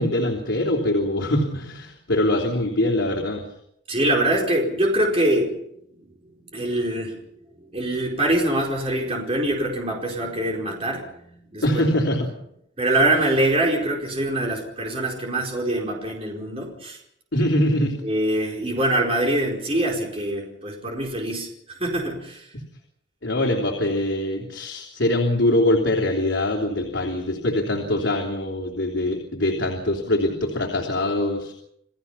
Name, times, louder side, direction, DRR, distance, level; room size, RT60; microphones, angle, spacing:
voice 1, 0.0-3.5 11.6-12.3 17.3-18.0 23.2-31.5, left 1 dB, 75° left, 0 dB, 3.2 m, -23 dB
voice 2, 3.9-5.5 6.5-7.2 7.7-11.8 12.8-17.0 18.0-21.5 21.8-22.5, right 1 dB, 30° right, 0 dB, 4.7 m, -24 dB
29.0 x 17.0 x 5.7 m, 0.74 s
head